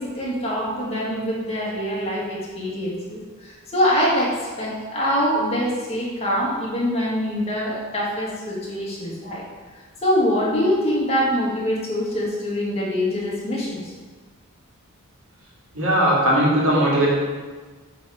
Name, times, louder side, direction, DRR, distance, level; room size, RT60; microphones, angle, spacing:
voice 1, 0.0-9.4 10.0-13.8 16.2-16.4, equal, 30° left, -5 dB, 1.7 m, -24 dB
voice 2, 15.7-17.1, right 1 dB, 65° right, -5 dB, 1.9 m, -18 dB
7.8 x 3.5 x 4.7 m, 1.4 s
head